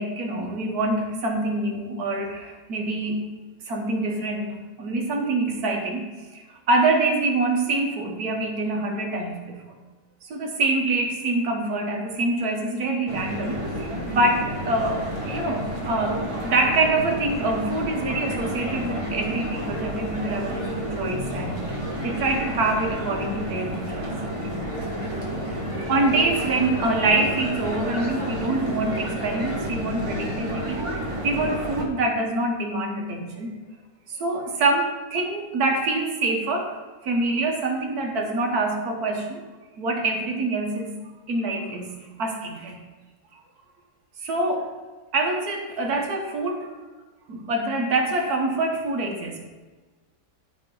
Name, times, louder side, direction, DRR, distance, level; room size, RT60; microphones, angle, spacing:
voice 1, 0.0-3.2 3.7-4.5 4.8-9.8 10.2-21.6 22.0-24.1 25.9-33.6 34.1-36.8 37.0-39.4 39.8-40.9 41.3-42.8 44.2-44.7 45.1-46.7 47.3-49.4, right 2 dB, 65° right, 1 dB, 1.6 m, -25 dB
sound 1, 13.1-31.9, equal, 20° right, 1.2 m, -30 dB
12.5 x 4.3 x 3.8 m, 1.3 s
omnidirectional pair, 1.8 m